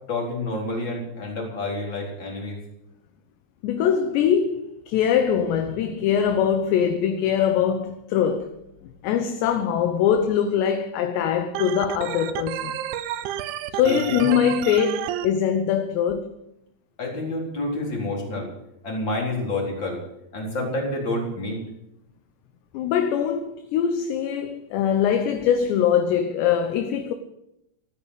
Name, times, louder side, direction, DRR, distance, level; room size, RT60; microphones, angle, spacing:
voice 1, 0.1-2.6 13.9-14.4 17.0-18.5 18.8-20.0 20.3-21.6, left 2 dB, 25° left, 4.1 m, -29 dB
voice 2, 3.6-8.6 9.0-12.8 13.7-16.3 22.7-27.1, left 8 dB, 75° left, 2.8 m, -22 dB
Organ, 11.6-15.3, right 12 dB, 80° right, 3.1 m, -31 dB
17.5 x 9.7 x 8.2 m
omnidirectional pair, 5.8 m